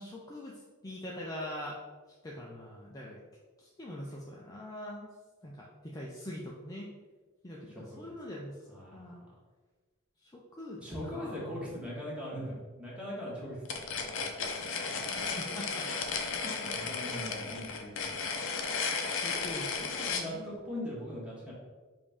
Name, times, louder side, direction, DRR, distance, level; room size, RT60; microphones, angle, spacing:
voice 1, 0.0-1.8 2.2-3.2 3.6-5.1 5.4-6.9 7.4-8.6 8.9-9.2 10.2-11.4 15.3-15.9 16.4-16.9 19.0-20.0 20.2-20.6, left 1 dB, 15° left, -4 dB, 0.4 m, -43 dB
voice 2, 7.7-8.1 8.7-9.1 10.8-14.3 16.6-18.3 19.8-21.5, equal, 5° right, -6 dB, 1.3 m, -41 dB
sound 1, 13.7-20.3, left 5 dB, 65° left, 0.5 m, -34 dB
5.1 x 2.6 x 3.4 m, 1.3 s
head